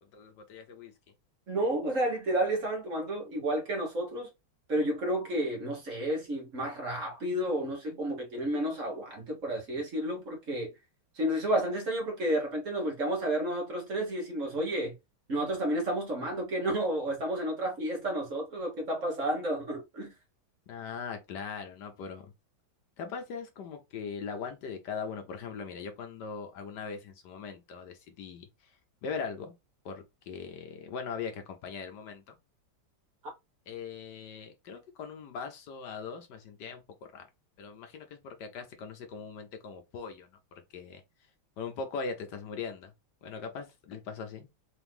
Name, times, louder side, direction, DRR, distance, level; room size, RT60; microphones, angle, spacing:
voice 1, 0.1-0.9 20.7-22.3 23.0-28.7 29.0-29.5 29.8-32.4 33.7-36.8 37.1-37.3 37.6-41.0 41.6-42.9 43.2-44.5, left 5 dB, 70° left, 1.2 m, -40 dB
voice 2, 1.5-4.3 4.7-10.7 11.1-14.9 15.3-20.1, right 1 dB, 45° right, 1.6 m, -31 dB
3.9 x 2.9 x 3.4 m
omnidirectional pair, 2.1 m